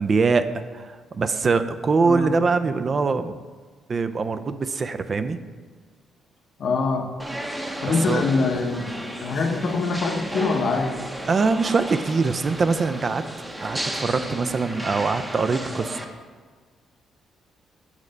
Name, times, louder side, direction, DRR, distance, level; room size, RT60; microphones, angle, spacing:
voice 1, 0.0-3.4 3.9-5.4 8.1-8.2 11.2-13.2 13.6-16.0, right 4 dB, 40° right, 10 dB, 0.3 m, -23 dB
voice 2, 2.0-2.3 6.6-7.1 7.8-11.0, left 4 dB, 60° left, 4 dB, 0.8 m, -24 dB
sound 1, 7.2-16.0, right 1 dB, 10° right, 0.7 m, -33 dB
7.2 x 3.2 x 5.2 m, 1.5 s
cardioid pair, 90°, 0 cm